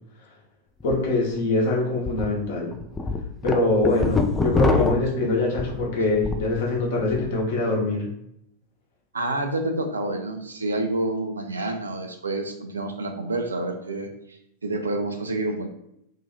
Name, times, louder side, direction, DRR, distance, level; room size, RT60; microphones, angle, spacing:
voice 1, 0.8-2.7 3.4-8.1, left 2 dB, 55° left, -1 dB, 0.9 m, -23 dB
sound 1, 0.8-1.0 1.4-1.5 2.1-2.3 2.7-6.5 6.9-7.3, left 3 dB, 15° left, 0.3 m, -25 dB
voice 2, 9.1-14.1 14.6-15.7, right 2 dB, 75° right, 5 dB, 0.4 m, -28 dB
2.7 x 2.3 x 4.1 m, 0.76 s
figure-of-eight pair, 90°, 0 cm